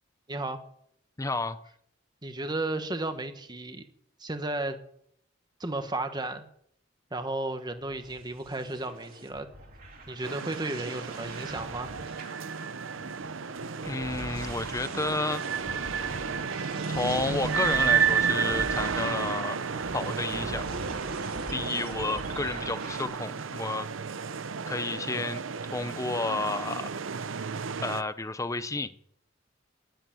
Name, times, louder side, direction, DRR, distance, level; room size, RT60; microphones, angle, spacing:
voice 1, 0.3-0.6 2.2-3.8 4.2-4.8 5.6-6.5 7.1-9.5 10.1-11.9, right 2 dB, 20° right, 8 dB, 1.4 m, -33 dB
voice 2, 1.2-1.6 13.8-15.4 16.9-20.7 21.5-23.9 24.7-26.9 27.8-28.9, left 3 dB, 15° left, 12 dB, 0.7 m, -31 dB
sound 1, 7.8-23.0, right 1 dB, 50° right, 3.3 m, -42 dB
sound 2, 10.2-28.0, right 6 dB, 85° right, 0.7 m, -32 dB
11.0 x 10.5 x 9.1 m, 0.69 s
head